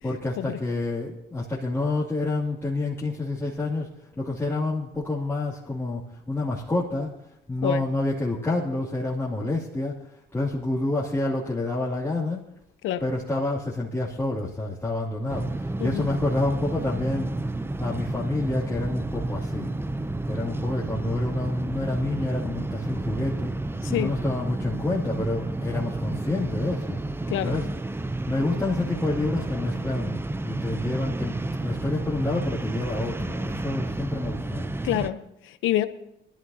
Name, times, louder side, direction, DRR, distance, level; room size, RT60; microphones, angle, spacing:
voice 1, 0.0-7.1 7.5-12.4 13.0-17.3 17.8-19.7 20.3-23.5 23.9-27.7 28.3-31.4 31.6-34.7, left 2 dB, 15° left, 2.5 m, -28 dB
sound 1, 15.3-35.1, right 2 dB, 10° right, 0.5 m, -31 dB
voice 2, 23.8-24.2 27.3-27.5 34.8-35.9, left 12 dB, 85° left, 0.8 m, -27 dB
20.0 x 13.5 x 2.8 m
cardioid pair, 90°, 20 cm